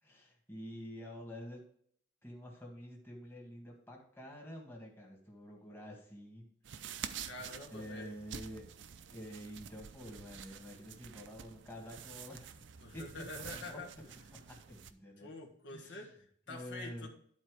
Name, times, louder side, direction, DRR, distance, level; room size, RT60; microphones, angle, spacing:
voice 1, 0.0-1.6 2.2-7.1 7.7-8.7 9.1-13.2 13.5-13.8 14.1-15.3 15.7-16.1 16.5-17.1, equal, 10° left, -1 dB, 1.7 m, -48 dB
sound 1, 6.6-14.9, right 8 dB, 70° right, 0.6 m, -48 dB
voice 2, 7.2-8.1 12.8-13.9 15.2-17.1, left 2 dB, 65° left, 0 dB, 1.5 m, -47 dB
11.5 x 4.3 x 4.8 m, 0.63 s
head